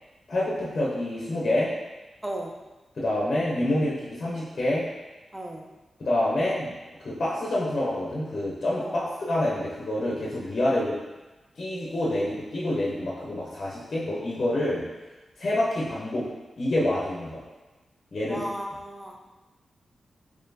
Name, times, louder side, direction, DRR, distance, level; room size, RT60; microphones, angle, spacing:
voice 1, 0.3-1.7 3.0-4.8 6.0-6.7 7.0-11.0 11.6-14.8 15.4-16.3 16.6-17.4 18.1-18.4, left 1 dB, 45° left, -6 dB, 0.7 m, -27 dB
voice 2, 2.2-2.5 5.3-5.7 8.8-9.1 18.3-19.2, right 1 dB, 5° right, 1 dB, 0.4 m, -35 dB
4.1 x 3.0 x 2.6 m, 1.1 s
wide cardioid pair, 145°, 0 cm